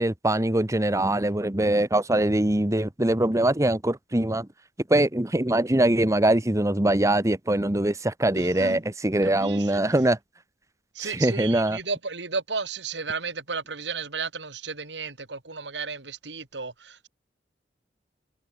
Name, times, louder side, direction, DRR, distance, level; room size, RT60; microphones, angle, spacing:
voice 1, 0.0-4.5 4.9-10.2 11.0-11.8, right 1 dB, 20° right, 1.1 m, -23 dB
voice 2, 8.3-8.8 9.2-9.8 10.9-17.1, right 4 dB, 90° right, 2.9 m, -33 dB
head